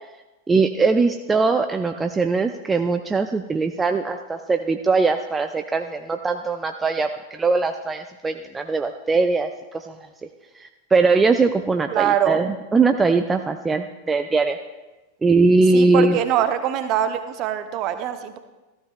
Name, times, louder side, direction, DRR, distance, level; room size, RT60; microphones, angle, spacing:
voice 1, 0.5-10.0 10.6-14.6 15.2-16.2, right 3 dB, 15° right, 6 dB, 0.5 m, -21 dB
voice 2, 11.9-12.4 15.7-18.4, right 10 dB, 40° right, 9 dB, 0.9 m, -23 dB
14.5 x 13.5 x 2.4 m, 1.1 s
figure-of-eight pair, 90°, 0 cm